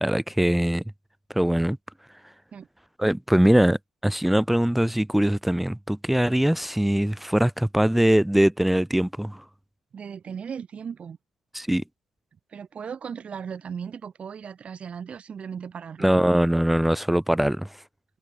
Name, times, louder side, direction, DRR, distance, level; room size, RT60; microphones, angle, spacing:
voice 1, 0.0-0.8 1.3-1.8 3.0-9.4 11.5-11.8 16.0-17.8, right 1 dB, 5° right, 0.3 m, -22 dB
voice 2, 9.9-11.2 12.5-16.1, right 7 dB, 45° right, 1.5 m, -37 dB
supercardioid pair, 65°, 3 cm